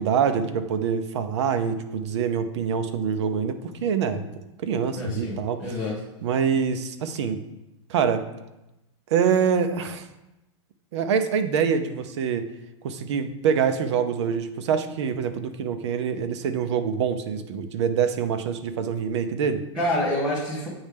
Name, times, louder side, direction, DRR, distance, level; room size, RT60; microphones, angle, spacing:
voice 1, 0.0-5.6 6.2-7.4 7.9-8.2 9.1-10.1 10.9-12.5 12.8-19.6, right 7 dB, 60° right, 9 dB, 0.6 m, -25 dB
voice 2, 4.9-6.0 19.7-20.7, left 1 dB, 5° right, -9 dB, 1.2 m, -27 dB
8.8 x 3.2 x 3.4 m, 0.94 s
supercardioid pair, 155°, 16 cm